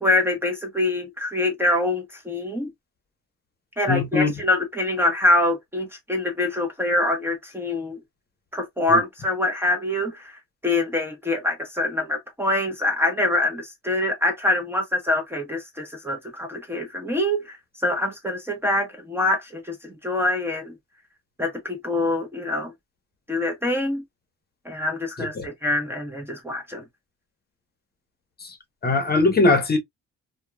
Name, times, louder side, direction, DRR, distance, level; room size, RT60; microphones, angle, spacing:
voice 1, 0.0-2.7 3.8-8.0 8.5-20.7 21.4-22.7 23.3-24.0 24.6-26.8, left 2 dB, 10° right, 0.8 m, -25 dB
voice 2, 3.9-4.3 8.9-9.0 25.4-25.5 28.4-28.6 28.8-29.8, left 3 dB, 30° left, 0.9 m, -20 dB
2.9 x 2.2 x 2.2 m
cardioid pair, 90°, 30 cm